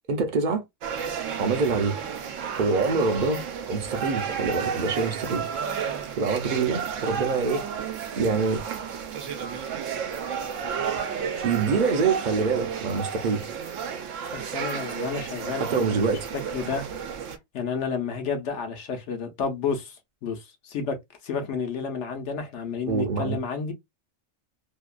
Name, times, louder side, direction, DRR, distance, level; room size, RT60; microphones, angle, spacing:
voice 1, 0.1-0.6 1.4-1.9 2.6-3.4 3.7-5.5 6.2-8.6 11.4-13.5 15.6-16.3 22.9-23.4, right 4 dB, 50° right, 0.6 m, -25 dB
sound 1, 0.8-17.4, right 7 dB, 85° right, 1.0 m, -32 dB
voice 2, 14.3-15.6 16.3-16.9 17.5-20.0 20.2-21.0 21.2-23.7, left 5 dB, 70° left, 1.0 m, -30 dB
2.7 x 2.2 x 2.4 m
omnidirectional pair, 1.3 m